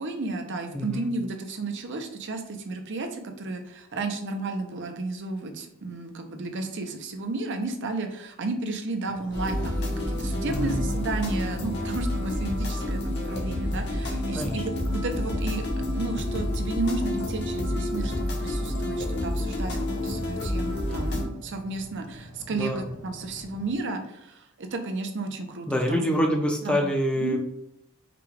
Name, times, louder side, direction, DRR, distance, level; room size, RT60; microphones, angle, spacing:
voice 1, 0.0-15.6 15.9-25.7 26.2-26.4 26.6-26.9 27.2-27.4, right 3 dB, 55° right, 5 dB, 0.6 m, -32 dB
voice 2, 0.7-1.1 10.4-10.8 14.3-14.6 20.9-21.0 22.5-22.9 25.7-27.4, equal, 5° left, 1 dB, 0.6 m, -26 dB
sound 1, 9.1-23.8, equal, 85° right, 0.9 m, -47 dB
sound 2, 9.3-21.2, left 1 dB, 50° left, 0.9 m, -29 dB
5.0 x 2.3 x 3.4 m, 0.80 s
head